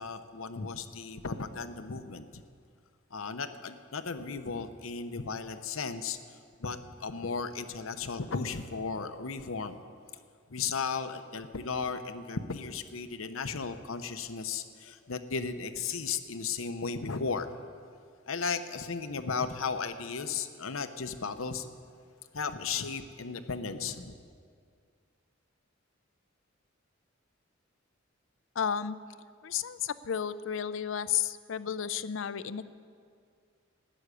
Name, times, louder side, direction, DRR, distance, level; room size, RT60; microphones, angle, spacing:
voice 1, 0.0-2.4 3.1-6.2 6.6-9.8 10.5-17.5 18.3-21.7 22.3-24.1, left 5 dB, 90° left, 9 dB, 0.8 m, -35 dB
voice 2, 28.6-29.0 29.4-32.7, left 8 dB, 70° left, 15 dB, 0.5 m, -32 dB
13.0 x 8.0 x 9.9 m, 2.1 s
head